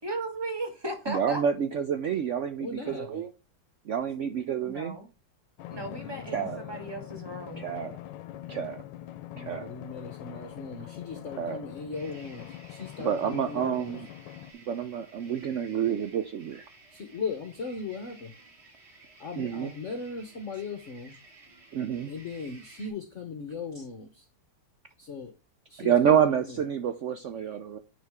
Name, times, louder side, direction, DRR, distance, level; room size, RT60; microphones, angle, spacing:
voice 1, 0.0-1.4 4.6-5.1 5.7-7.7, right 1 dB, 15° right, 1.7 m, -36 dB
voice 2, 1.1-3.3 3.9-5.0 6.3-6.6 7.6-7.9 8.5-8.8 9.4-9.7 11.4-11.6 13.0-14.1 14.7-16.6 19.4-19.7 21.7-22.1 23.8-23.9 25.8-27.8, right 8 dB, 85° right, 0.6 m, -28 dB
voice 3, 2.6-3.2 5.7-6.7 9.3-13.9 16.9-18.3 19.2-21.1 22.1-24.2 25.0-25.3 25.7-26.6, left 4 dB, 50° left, 1.1 m, -38 dB
Drum, 5.6-14.5, left 12 dB, 80° left, 1.3 m, -43 dB
sound 1, 11.9-22.9, right 3 dB, 35° right, 2.2 m, -54 dB
9.4 x 4.1 x 3.5 m
omnidirectional pair, 2.0 m